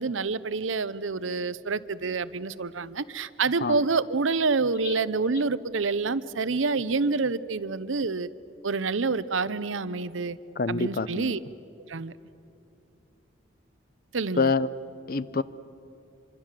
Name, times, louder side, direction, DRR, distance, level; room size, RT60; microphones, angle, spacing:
voice 1, 0.0-8.3 8.6-10.4 10.7-11.4 11.9-12.1 14.1-14.5, right 4 dB, 85° right, 16 dB, 0.8 m, -27 dB
voice 2, 10.6-11.3 14.4-14.7 15.1-15.4, left 4 dB, 50° left, 16 dB, 0.7 m, -26 dB
26.0 x 25.0 x 7.5 m, 2.8 s
head